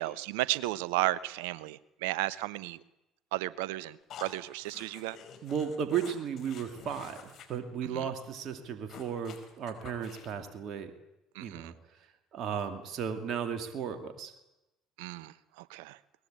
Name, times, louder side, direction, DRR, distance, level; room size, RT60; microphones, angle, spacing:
voice 1, 0.0-2.8 3.3-5.2 7.8-8.1 11.3-11.7 15.0-16.0, right 17 dB, 70° right, 19 dB, 0.9 m, -34 dB
sound 1, 4.1-7.5 7.8-7.9 8.2-8.3 8.6-10.5, left 7 dB, 50° left, 4.9 m, -50 dB
voice 2, 5.4-10.9 11.4-11.7 12.3-14.3, right 7 dB, 50° right, 7 dB, 2.4 m, -35 dB
22.5 x 20.0 x 8.8 m, 0.94 s
hypercardioid pair, 60°, 0 cm